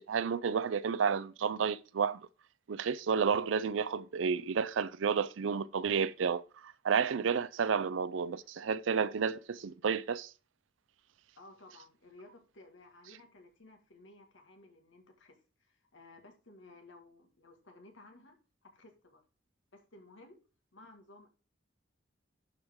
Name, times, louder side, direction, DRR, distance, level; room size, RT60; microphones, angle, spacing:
voice 1, 0.0-2.3 2.7-10.3, right 6 dB, 85° right, 0.4 m, -31 dB
voice 2, 11.3-19.2 19.7-20.4 20.7-21.3, left 2 dB, 80° left, 1.7 m, -57 dB
11.5 x 4.7 x 3.6 m
head